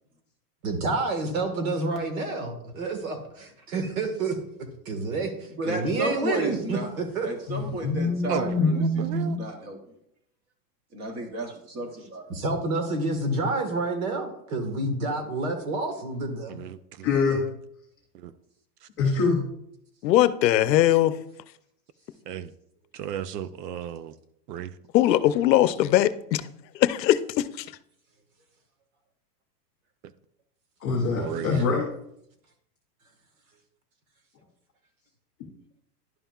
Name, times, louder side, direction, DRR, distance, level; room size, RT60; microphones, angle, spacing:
voice 1, 0.6-4.4 4.8-7.3 12.3-16.6, right 2 dB, 55° right, 1.7 m, -29 dB
voice 2, 5.5-6.9 7.2-9.8 10.9-12.2, right 1 dB, 20° right, 0.9 m, -33 dB
voice 3, 7.5-9.4 17.0-17.4 19.0-19.4 30.8-31.9, left 3 dB, 10° left, 0.4 m, -24 dB
voice 4, 8.3-9.4 16.6-17.1 18.2-18.3 22.3-22.5 23.0-24.1 24.5-24.7 31.2-31.6, right 9 dB, 70° right, 0.6 m, -34 dB
voice 5, 20.0-21.1 24.9-26.4 26.8-27.6, left 13 dB, 85° left, 0.7 m, -20 dB
11.0 x 5.5 x 2.4 m
supercardioid pair, 160°, 49 cm